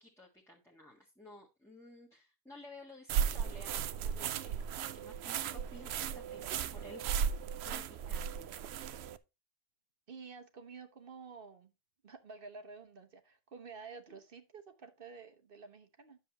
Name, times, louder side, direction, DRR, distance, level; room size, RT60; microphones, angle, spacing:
voice 1, 0.0-6.5 6.8-8.7, left 2 dB, 5° left, -3 dB, 1.4 m, -55 dB
sound 1, 3.1-9.2, right 8 dB, 75° right, 0.8 m, -36 dB
voice 2, 10.1-11.7 12.0-16.2, right 5 dB, 55° right, 8 dB, 1.2 m, -50 dB
10.0 x 7.1 x 2.9 m, 0.26 s
omnidirectional pair, 1.1 m